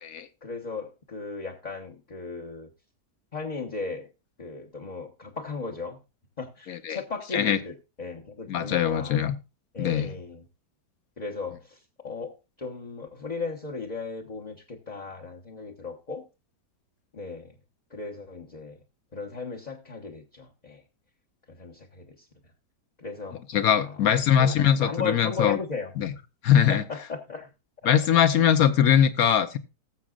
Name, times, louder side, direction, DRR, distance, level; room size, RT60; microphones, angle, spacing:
voice 1, 0.4-2.7 3.3-4.1 4.4-6.0 6.4-9.2 9.7-10.5 11.2-16.2 17.1-17.5 17.9-18.8 19.1-20.8 21.5-22.3 23.0-23.4 23.9-24.0 24.4-25.9 26.7-27.5 27.8-27.9 28.3-28.5, left 4 dB, 30° left, -1 dB, 1.0 m, -36 dB
voice 2, 6.7-7.0 7.3-7.6 8.5-9.4 9.8-10.1 23.5-25.6 26.0-26.1 26.4-26.8 27.8-29.6, left 9 dB, 65° left, 11 dB, 1.2 m, -21 dB
19.0 x 7.3 x 2.4 m, 0.28 s
omnidirectional pair, 1.8 m